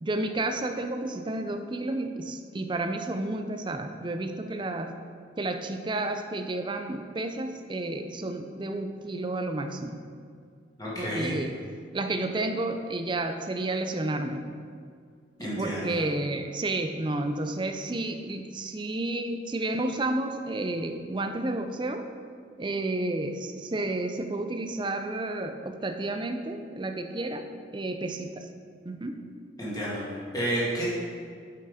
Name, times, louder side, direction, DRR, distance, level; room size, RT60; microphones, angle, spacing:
voice 1, 0.0-4.9 5.4-10.0 11.0-11.6 11.9-14.5 15.4-22.1 22.6-27.5 27.7-28.5 28.8-29.2, right 2 dB, 25° right, 7 dB, 0.4 m, -31 dB
voice 2, 10.8-11.3 15.4-16.0 29.6-30.9, right 1 dB, 20° left, -7 dB, 2.1 m, -30 dB
7.5 x 5.8 x 5.0 m, 2.1 s
head